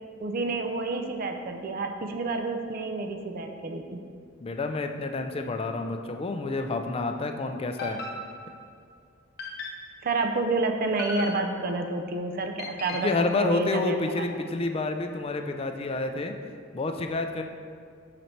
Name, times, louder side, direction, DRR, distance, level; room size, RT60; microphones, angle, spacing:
voice 1, 0.2-4.0 10.0-14.2, right 3 dB, 45° right, 5 dB, 0.4 m, -29 dB
voice 2, 4.4-8.0 12.9-16.3 16.7-17.4, left 3 dB, 30° left, 6 dB, 0.4 m, -29 dB
sound 1, 7.8-8.8 9.4-10.1 11.0-11.8 12.6-13.3, left 2 dB, 50° left, 0.7 m, -38 dB
6.4 x 4.1 x 4.4 m, 2.2 s
head